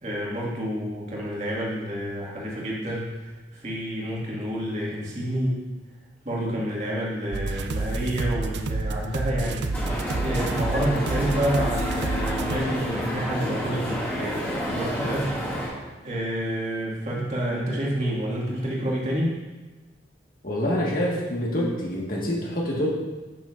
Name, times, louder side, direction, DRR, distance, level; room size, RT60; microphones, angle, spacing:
voice 1, 0.0-5.7 6.3-19.4, equal, 40° right, -5 dB, 2.0 m, -29 dB
sound 1, 7.3-12.6, right 3 dB, 70° right, 0.4 m, -29 dB
sound 2, 9.7-15.7, equal, 10° left, 2.1 m, -30 dB
voice 2, 20.4-22.9, equal, 50° left, -3 dB, 1.6 m, -26 dB
11.5 x 6.1 x 2.6 m, 1.2 s
head